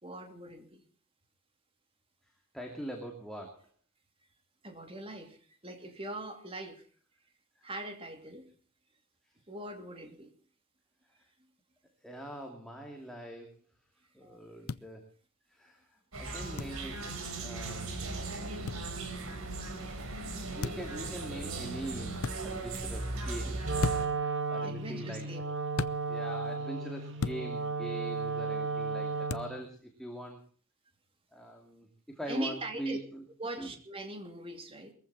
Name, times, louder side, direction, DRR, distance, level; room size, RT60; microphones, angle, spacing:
voice 1, 0.0-0.8 4.6-6.9 7.6-8.5 9.5-10.3 14.2-14.7 24.6-25.4 32.3-33.0 33.4-34.9, right 1 dB, 25° right, 6 dB, 2.8 m, -41 dB
voice 2, 2.2-3.7 7.6-7.7 12.0-13.6 14.1-15.1 15.5-19.5 20.5-25.3 26.1-30.4 31.3-33.2 33.6-33.7, right 1 dB, ahead, 1 dB, 2.6 m, -43 dB
sound 1, 14.7-14.8 16.6-16.8 18.7-18.8 20.6-20.9 22.2-22.4 23.8-24.2 25.7-26.0 27.2-27.4 29.3-29.5, left 4 dB, 75° left, 0.7 m, -34 dB
sound 2, 16.1-24.1, right 2 dB, 75° right, 4.1 m, -38 dB
Wind instrument woodwind instrument, 23.6-29.6, right 4 dB, 55° right, 2.3 m, -34 dB
22.0 x 15.0 x 4.3 m, 0.42 s
head